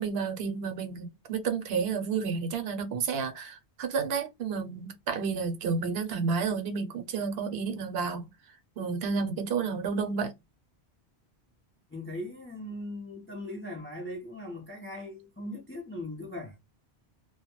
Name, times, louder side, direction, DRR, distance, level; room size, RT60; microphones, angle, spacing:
voice 1, 0.0-8.3 8.8-10.3, right 5 dB, 70° right, 0.9 m, -31 dB
voice 2, 11.9-16.6, left 1 dB, 15° left, 0.4 m, -39 dB
2.2 x 2.1 x 2.9 m
omnidirectional pair, 1.1 m